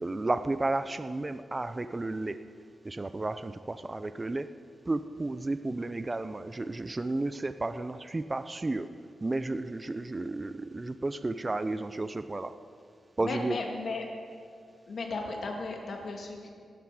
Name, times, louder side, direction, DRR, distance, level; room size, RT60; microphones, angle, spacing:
voice 1, 0.0-2.4 2.8-4.5 4.9-8.9 9.2-12.5 13.2-13.6, right 2 dB, 20° right, 11 dB, 0.4 m, -32 dB
voice 2, 13.2-14.0 14.9-16.5, left 3 dB, 55° left, 1 dB, 2.0 m, -35 dB
18.0 x 12.0 x 4.8 m, 2.3 s
wide cardioid pair, 150°, 0 cm